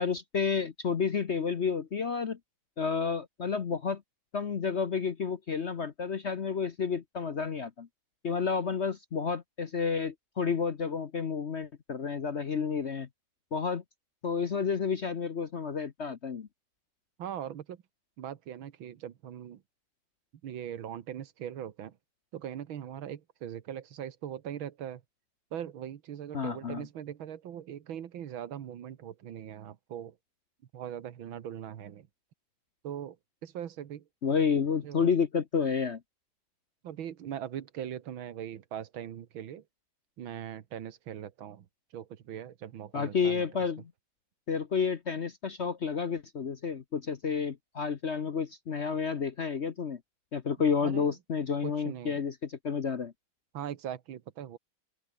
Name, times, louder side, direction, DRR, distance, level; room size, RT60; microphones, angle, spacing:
voice 1, 0.0-2.4 2.8-4.0 4.3-7.9 8.2-13.1 13.5-13.8 14.2-16.5 26.3-26.9 34.2-36.0 42.9-43.9 44.5-50.0 50.3-53.1, left 6 dB, 45° left, 0.9 m, -30 dB
voice 2, 17.2-17.8 18.2-19.6 20.4-22.0 22.3-25.0 25.5-30.2 30.7-32.1 32.8-33.2 33.4-34.1 34.8-35.1 36.8-39.7 40.2-41.7 41.9-43.5 50.8-51.1 51.6-52.2 53.5-54.6, right 10 dB, 85° right, 2.1 m, -40 dB
open air
omnidirectional pair, 2.2 m